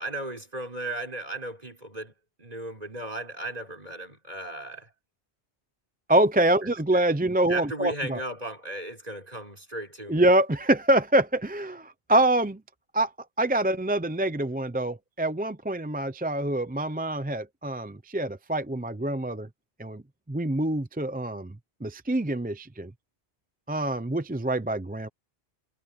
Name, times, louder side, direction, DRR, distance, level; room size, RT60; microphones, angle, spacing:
voice 1, 0.0-2.1 2.4-4.9 6.6-7.0 7.3-10.3, right 2 dB, 35° right, 5.7 m, -36 dB
voice 2, 6.1-8.2 10.1-12.6 12.9-13.1 13.4-19.5 19.8-20.0 20.3-21.5 21.8-22.9 23.7-25.1, right 1 dB, 10° right, 0.5 m, -25 dB
omnidirectional pair, 1.1 m